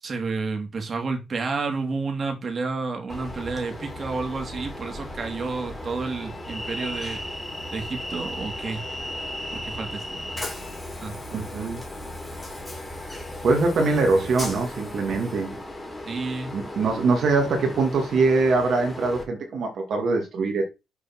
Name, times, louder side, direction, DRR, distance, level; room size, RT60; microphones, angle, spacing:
voice 1, 0.0-7.4 7.7-8.8 9.5-10.4 11.0-11.2 16.1-16.7, right 4 dB, 40° right, 2.7 m, -30 dB
Train, 3.1-19.2, left 1 dB, 10° left, 3.4 m, -36 dB
voice 2, 11.3-11.8 13.4-15.6 16.5-20.6, right 3 dB, 60° right, 2.3 m, -23 dB
6.8 x 4.8 x 6.0 m
cardioid pair, 90°, 0 cm